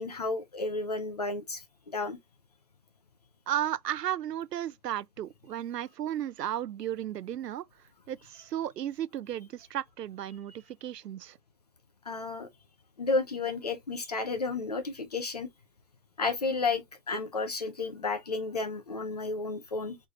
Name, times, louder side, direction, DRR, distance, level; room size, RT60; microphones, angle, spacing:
voice 1, 0.0-2.2 12.1-12.5 13.0-15.5 16.2-20.0, left 3 dB, 25° left, 0.6 m, -32 dB
voice 2, 3.5-7.6 8.1-10.5 10.8-11.4, right 11 dB, 75° right, 0.7 m, -34 dB
4.6 x 4.5 x 2.5 m
hypercardioid pair, 160°, 49 cm